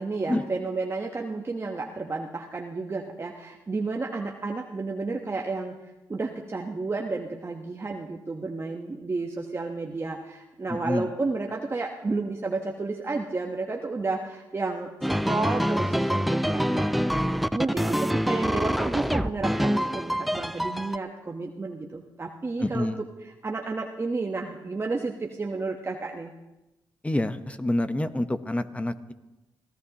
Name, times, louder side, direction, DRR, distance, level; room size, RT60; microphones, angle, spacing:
voice 1, 0.0-5.8 6.1-17.2 17.5-22.9 23.4-26.3, right 3 dB, 30° right, 1 dB, 1.1 m, -31 dB
voice 2, 10.7-11.1 22.6-23.0 27.0-29.1, left 1 dB, 15° left, 11 dB, 1.0 m, -27 dB
sound 1, 15.0-21.0, equal, ahead, 0.5 m, -26 dB
25.5 x 15.5 x 2.9 m, 1.0 s
cardioid pair, 65°, 8 cm